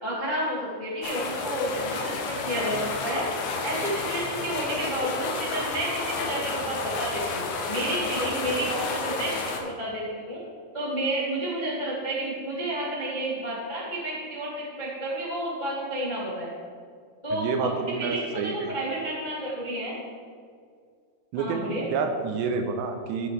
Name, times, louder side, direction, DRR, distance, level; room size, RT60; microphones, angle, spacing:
voice 1, 0.0-3.3 3.6-10.4 10.7-16.5 17.2-17.7 18.0-20.0 21.4-21.8, right 1 dB, 55° left, -8 dB, 0.5 m, -31 dB
sound 1, 1.0-9.6, left 4 dB, 85° left, 3.4 m, -31 dB
voice 2, 17.3-18.8 21.3-23.3, right 5 dB, 85° right, 5 dB, 2.8 m, -29 dB
16.0 x 6.5 x 3.3 m, 2.1 s
omnidirectional pair, 5.1 m